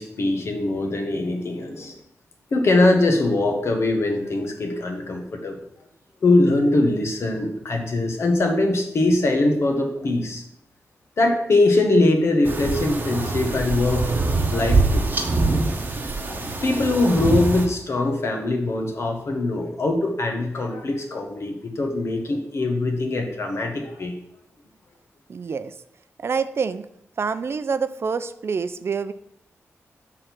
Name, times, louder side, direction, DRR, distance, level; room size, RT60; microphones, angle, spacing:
voice 1, 0.0-1.9 2.5-5.6 6.2-10.4 11.2-15.0 15.4-24.2, left 2 dB, 60° left, 3 dB, 1.3 m, -22 dB
sound 1, 12.5-17.7, right 3 dB, 35° right, 1.0 m, -23 dB
voice 2, 25.3-25.7 26.2-26.9 27.2-29.1, right 5 dB, 50° right, 12 dB, 0.4 m, -26 dB
6.4 x 3.8 x 6.0 m, 0.75 s
cardioid pair, 80°, 5 cm